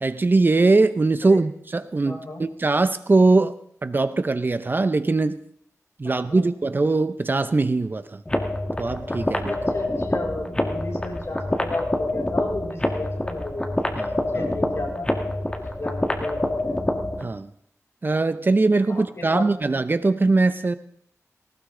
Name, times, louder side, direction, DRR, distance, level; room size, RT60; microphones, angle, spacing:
voice 1, 0.0-3.6 3.8-5.4 6.0-8.2 8.8-9.6 14.0-14.5 17.2-17.5 18.0-20.7, right 3 dB, 35° right, 12 dB, 0.7 m, -21 dB
voice 2, 2.0-2.4 6.0-6.5 9.5-13.9 14.3-16.5 18.9-19.5, left 2 dB, 50° left, -1 dB, 6.3 m, -34 dB
sound 1, 8.3-17.3, left 1 dB, 15° left, 2.0 m, -26 dB
19.5 x 18.5 x 3.8 m, 0.66 s
wide cardioid pair, 115°, 6 cm